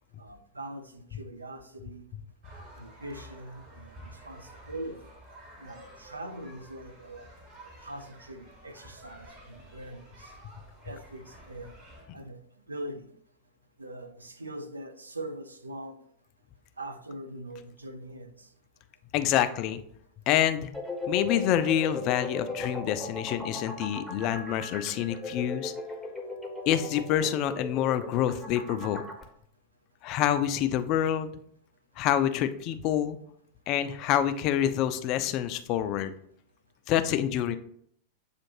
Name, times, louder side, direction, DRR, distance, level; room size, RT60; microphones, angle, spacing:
voice 1, 0.2-2.1 2.8-5.1 5.6-7.3 7.8-10.3 10.8-11.8 12.1-12.4 12.7-13.1 13.8-16.0 16.8-18.5, right 1 dB, 80° right, 0.4 m, -42 dB
sound 1, 2.4-12.0, right 1 dB, 35° right, 1.6 m, -51 dB
voice 2, 19.1-19.8 20.3-20.7 21.1-25.7 26.7-29.0 30.0-31.3 32.0-33.2 33.7-36.1 36.9-37.6, left 11 dB, 40° left, 0.3 m, -27 dB
sound 2, 20.7-29.2, left 3 dB, ahead, 0.8 m, -37 dB
7.3 x 2.5 x 2.9 m
figure-of-eight pair, 90°, 0 cm